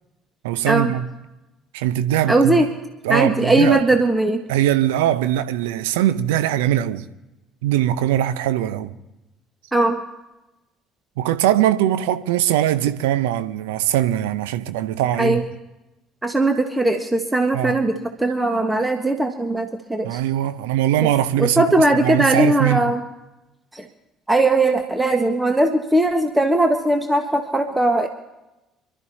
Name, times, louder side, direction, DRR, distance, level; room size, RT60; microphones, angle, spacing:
voice 1, 0.4-1.1 1.7-2.6 3.0-3.8 4.5-7.1 7.6-8.9 11.2-15.4 17.5-17.8 20.0-21.7 22.0-22.9, right 12 dB, 75° right, 0.7 m, -21 dB
voice 2, 2.3-2.7 3.1-4.4 9.7-10.0 15.2-15.4 16.2-20.2 21.4-23.0 23.7-23.9 24.3-28.1, right 2 dB, 10° right, 1.4 m, -19 dB
27.5 x 13.0 x 2.8 m
hypercardioid pair, 55°, 0 cm